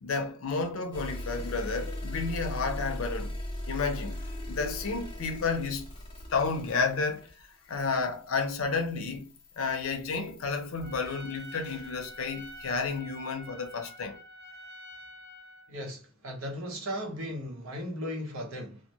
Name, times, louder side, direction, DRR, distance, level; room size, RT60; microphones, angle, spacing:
voice 1, 0.0-3.4 3.7-5.9 6.3-9.3 9.6-14.2, left 4 dB, 80° left, 0.5 m, -31 dB
sound 1, 0.9-13.0, left 1 dB, 25° left, 0.6 m, -40 dB
Trumpet, 10.8-15.7, left 1 dB, 50° right, 0.7 m, -47 dB
voice 2, 15.7-18.8, equal, 80° right, 0.8 m, -36 dB
2.1 x 2.1 x 2.8 m
head